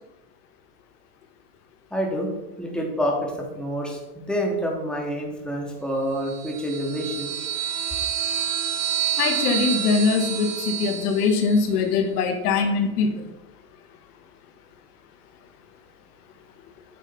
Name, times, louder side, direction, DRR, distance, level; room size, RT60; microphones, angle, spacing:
voice 1, 1.9-2.3 2.6-7.3, equal, ahead, -1 dB, 2.7 m, -27 dB
sound 1, 6.2-11.7, right 10 dB, 65° right, 2.6 m, -28 dB
voice 2, 9.2-13.2, left 5 dB, 70° left, 7 dB, 1.4 m, -22 dB
9.1 x 6.3 x 5.6 m, 1.0 s
hypercardioid pair, 100°, 47 cm